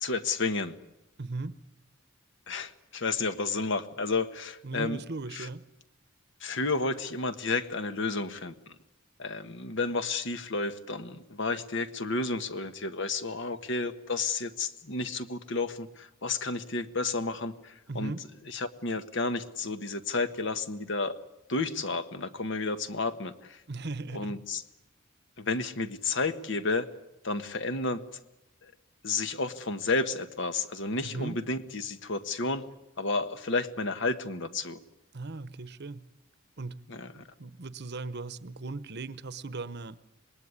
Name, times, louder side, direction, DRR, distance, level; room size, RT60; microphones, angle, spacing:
voice 1, 0.0-0.8 2.5-5.0 5.3-5.5 6.4-8.5 9.2-18.1 18.5-21.2 21.5-23.6 24.1-24.6 25.4-26.9 27.2-28.0 28.6-28.7 29.0-32.6 33.0-34.8 36.9-37.2, left 3 dB, 60° left, 10 dB, 1.4 m, -31 dB
voice 2, 1.2-1.5 4.6-5.6 17.9-18.2 23.7-24.4 31.0-31.4 35.1-36.1 36.6-36.8 37.1-40.0, right 3 dB, 50° right, 15 dB, 1.0 m, -38 dB
26.5 x 20.0 x 9.8 m, 0.90 s
head